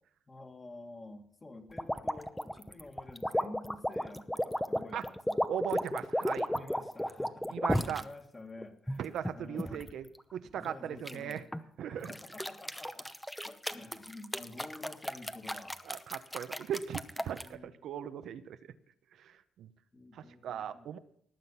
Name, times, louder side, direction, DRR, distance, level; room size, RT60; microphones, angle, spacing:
voice 1, 0.3-5.4 6.5-9.9 10.5-11.4 11.9-13.1 13.4-15.8 17.4-17.8 19.9-21.0, left 2 dB, 25° left, 4 dB, 2.2 m, -50 dB
sound 1, 1.8-8.0 8.6-9.9 11.1-11.6 12.0-17.5, equal, 5° left, 0.8 m, -34 dB
voice 2, 5.5-6.5 7.5-8.0 9.0-11.4 11.8-12.1 15.9-18.6 19.2-19.7 20.1-21.0, right 9 dB, 75° right, 10 dB, 0.8 m, -38 dB
18.5 x 7.7 x 5.7 m, 0.65 s
cardioid pair, 90°, 0 cm